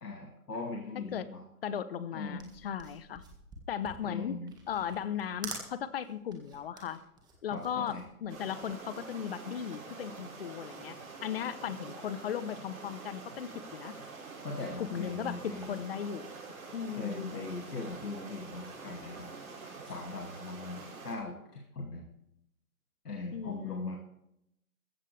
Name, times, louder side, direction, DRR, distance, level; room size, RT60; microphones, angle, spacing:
voice 1, 0.0-1.4 2.1-2.5 4.0-4.5 7.5-8.0 14.4-15.8 17.0-19.3 19.8-22.0 23.0-24.0, left 3 dB, 90° left, 1 dB, 2.6 m, -40 dB
voice 2, 1.6-3.2 3.7-4.4 4.7-7.0 7.4-11.0 11.2-14.0 14.8-16.3 16.7-17.3 23.3-23.9, left 8 dB, 40° left, 15 dB, 1.0 m, -37 dB
contact case open and close, 2.4-8.9, right 4 dB, 10° right, 1.8 m, -47 dB
sound 1, 8.3-21.1, right 4 dB, 60° right, 6.3 m, -46 dB
15.0 x 14.5 x 3.4 m, 0.80 s
hypercardioid pair, 145°, 45 cm